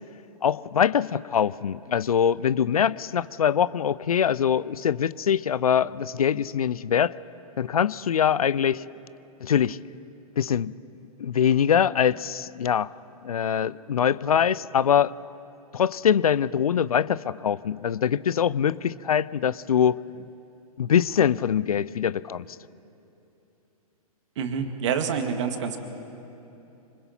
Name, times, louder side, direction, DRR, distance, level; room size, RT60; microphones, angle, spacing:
voice 1, 0.4-7.1 7.6-8.8 9.4-9.8 10.4-10.7 11.2-12.9 13.2-15.1 15.7-20.0 20.8-22.4, left 8 dB, 70° left, 20 dB, 0.5 m, -23 dB
voice 2, 24.4-25.8, right 6 dB, 50° right, 6 dB, 2.1 m, -27 dB
26.0 x 25.5 x 4.4 m, 2.9 s
figure-of-eight pair, 115°, 20 cm